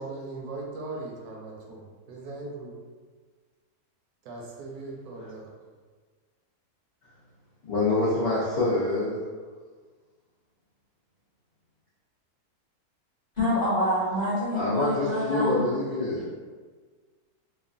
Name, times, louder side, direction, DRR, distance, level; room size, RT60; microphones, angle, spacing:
voice 1, 0.0-2.7 4.2-5.5, right 2 dB, 75° right, -2 dB, 1.1 m, -39 dB
voice 2, 7.7-9.2 14.5-16.3, left 2 dB, 80° left, -10 dB, 0.4 m, -26 dB
voice 3, 13.4-15.6, left 1 dB, 40° left, -11 dB, 0.6 m, -26 dB
3.0 x 2.1 x 2.4 m, 1.5 s
omnidirectional pair, 1.6 m